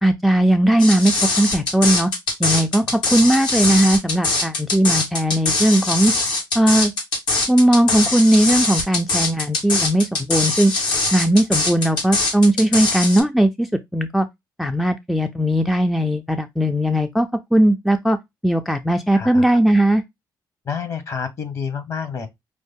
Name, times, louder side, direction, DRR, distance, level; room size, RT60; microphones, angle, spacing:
voice 1, 0.0-2.1 2.4-6.1 6.5-6.9 7.5-10.7 11.1-14.3 14.6-18.2 18.4-20.0, right 1 dB, ahead, 0.3 m, -18 dB
sound 1, 0.8-13.2, left 3 dB, 80° left, 1.7 m, -22 dB
voice 2, 19.1-19.6 20.7-22.3, left 6 dB, 45° left, 1.1 m, -28 dB
5.2 x 2.1 x 3.4 m
cardioid pair, 125°, 8 cm